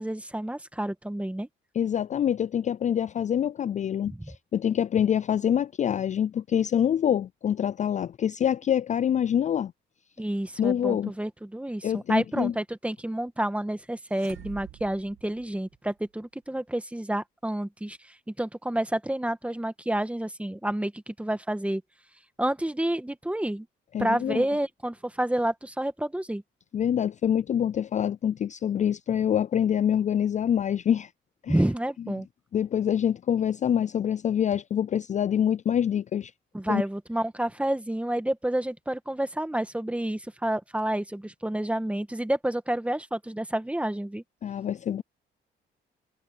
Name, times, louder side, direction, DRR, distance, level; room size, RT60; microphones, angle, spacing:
voice 1, 0.0-1.5 4.1-4.3 10.2-21.8 22.4-23.7 24.0-26.4 31.5-32.3 36.5-44.2, right 1 dB, 5° right, 1.5 m, -29 dB
voice 2, 1.7-9.7 10.6-11.1 11.8-12.5 23.9-24.4 26.7-31.1 31.4-31.6 32.1-32.2 32.5-36.3 36.7-36.8 44.4-45.0, left 9 dB, 40° left, 0.4 m, -26 dB
sound 1, 14.0-16.1, right 13 dB, 90° right, 2.3 m, -47 dB
cardioid pair, 90°, 20 cm